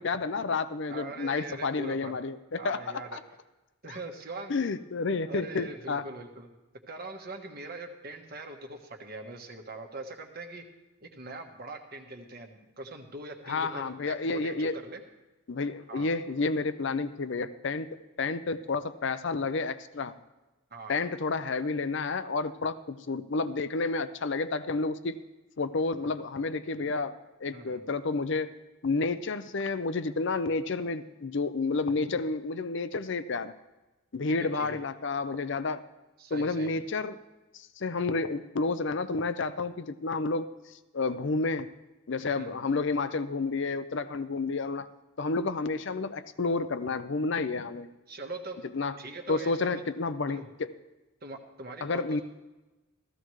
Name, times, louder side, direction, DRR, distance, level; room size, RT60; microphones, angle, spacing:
voice 1, 0.0-2.8 3.1-3.2 4.5-6.0 13.5-14.7 15.5-17.9 18.2-20.1 20.9-25.2 25.6-27.1 27.4-28.5 28.8-33.5 34.1-35.8 36.3-37.2 37.5-40.5 40.9-41.7 42.1-44.9 45.2-47.9 48.7-49.0 49.3-50.4 51.8-52.2, left 3 dB, 55° left, 13 dB, 0.6 m, -30 dB
voice 2, 0.9-2.2 2.6-3.2 3.8-4.5 5.2-6.5 6.9-10.6 11.0-15.0 15.9-16.1 20.7-20.9 26.0-26.1 27.5-27.9 34.3-34.8 36.2-36.8 42.2-42.6 48.1-48.6 49.0-49.8 50.3-50.5 51.2-52.2, right 2 dB, 45° right, 3 dB, 1.3 m, -42 dB
15.0 x 14.5 x 3.2 m, 1.1 s
head